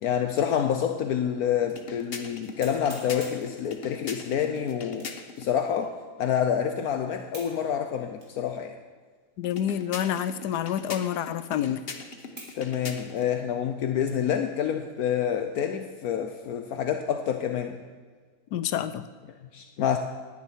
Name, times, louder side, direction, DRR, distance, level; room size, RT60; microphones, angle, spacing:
voice 1, 0.0-5.1 5.4-8.8 12.6-17.8 19.5-20.0, left 8 dB, 70° left, 6 dB, 1.2 m, -27 dB
sound 1, 1.2-1.3 1.8-1.9 2.6-3.5 4.9-5.3 5.8-5.9 7.3-7.6 8.2-8.3 9.0-9.1 10.1-10.4 10.7-10.8 11.5-11.6 12.4-12.6 12.9-14.4 14.9-15.0 15.5-15.9, right 1 dB, 70° right, 3.9 m, -47 dB
sound 2, 1.6-5.5 9.4-13.3, left 4 dB, 45° left, 1.1 m, -41 dB
voice 2, 9.4-11.8 18.5-19.0, left 10 dB, 90° left, 13 dB, 1.3 m, -28 dB
19.0 x 10.0 x 4.6 m, 1.5 s
omnidirectional pair, 1.7 m